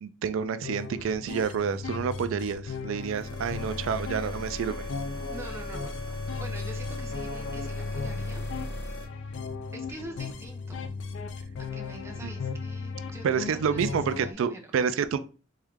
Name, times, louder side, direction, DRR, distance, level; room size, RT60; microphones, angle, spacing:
voice 1, 0.0-4.9 12.2-12.3 13.2-15.2, right 7 dB, 85° right, 12 dB, 0.3 m, -29 dB
sound 1, 0.6-14.3, left 4 dB, 70° left, 0.4 m, -36 dB
sound 2, 3.1-9.0, left 1 dB, 90° left, 1.2 m, -38 dB
voice 2, 3.6-4.3 5.3-8.4 9.7-10.9 11.6-14.7, right 1 dB, 15° right, 2 dB, 0.6 m, -45 dB
3.6 x 3.2 x 3.5 m, 0.36 s
head